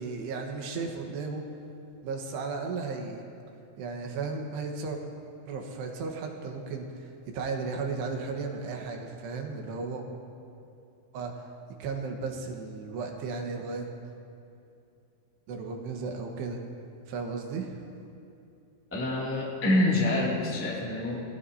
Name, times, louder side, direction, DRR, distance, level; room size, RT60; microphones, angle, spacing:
voice 1, 0.0-1.5 2.0-3.2 3.8-5.0 5.5-10.0 11.1-11.5 11.8-13.9 15.5-16.6 17.1-17.8, right 4 dB, 70° right, 2 dB, 3.2 m, -35 dB
voice 2, 18.9-21.2, left 1 dB, 10° left, -6 dB, 0.8 m, -26 dB
27.0 x 18.5 x 2.8 m, 2.7 s
omnidirectional pair, 5.4 m